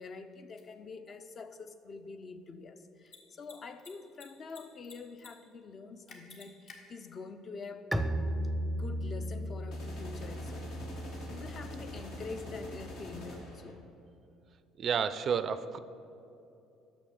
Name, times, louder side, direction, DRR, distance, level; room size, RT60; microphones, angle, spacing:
voice 1, 0.0-7.9 8.7-10.7 11.3-13.9, left 4 dB, 45° left, 8 dB, 0.6 m, -46 dB
Mechanisms, 0.6-0.7 3.0-3.2 3.4-3.5 3.8-4.6 4.8-5.3 5.5-5.6 6.1-6.8, left 4 dB, 60° left, 1.4 m, -51 dB
Bowed string instrument, 7.9-13.5, equal, 5° right, 0.6 m, -37 dB
sound 1, 9.7-13.7, left 1 dB, 80° left, 1.6 m, -45 dB
voice 2, 14.8-15.8, right 7 dB, 50° right, 13 dB, 0.4 m, -30 dB
6.3 x 6.3 x 6.5 m, 2.7 s
supercardioid pair, 70°, 0 cm